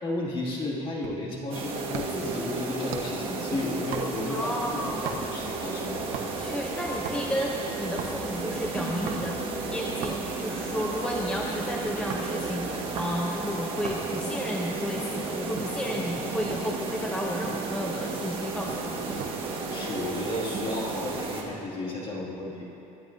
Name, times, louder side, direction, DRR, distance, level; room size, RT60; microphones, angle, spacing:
voice 1, 0.0-6.0 15.7-16.1 19.7-22.7, left 2 dB, 40° left, -5 dB, 2.3 m, -33 dB
sound 1, 1.0-1.3 1.9-2.3 2.9-3.3 3.9-4.4 5.1-5.4 6.1-6.5 6.9-7.3 8.0-8.2 9.1-9.4 10.0-10.4 11.0-12.3 13.0-13.1 13.8-14.1 14.7-15.8 16.5-16.7 17.1-17.2 17.4-17.9 18.7-19.4 19.7-20.0, right 7 dB, 90° right, 1.1 m, -39 dB
sound 2, 1.5-21.4, right 3 dB, 40° right, 1.6 m, -33 dB
voice 2, 4.3-5.1 6.4-9.4 9.7-19.0, equal, 5° left, -2 dB, 0.7 m, -32 dB
sound 3, 4.7-13.1, left 2 dB, 55° left, 2.3 m, -49 dB
21.0 x 10.0 x 2.7 m, 3.0 s
cardioid pair, 165°, 14 cm